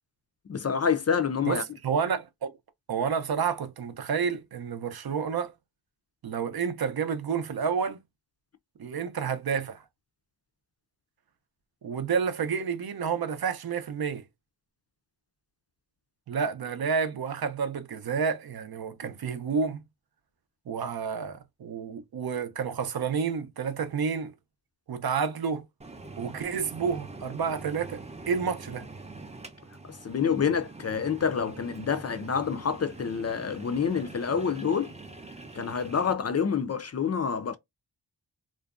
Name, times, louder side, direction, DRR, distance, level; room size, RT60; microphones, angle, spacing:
voice 1, 0.5-1.6 29.8-34.9 35.5-37.6, left 6 dB, 40° left, 0.4 m, -27 dB
voice 2, 1.4-2.5 2.9-5.5 6.2-8.0 8.8-9.8 11.8-14.3 16.3-19.8 20.7-24.3 24.9-25.7 26.2-28.9, right 6 dB, 60° right, 0.6 m, -30 dB
sound 1, 25.8-36.1, right 3 dB, 15° right, 0.5 m, -44 dB
2.5 x 2.1 x 2.3 m
cardioid pair, 55°, 42 cm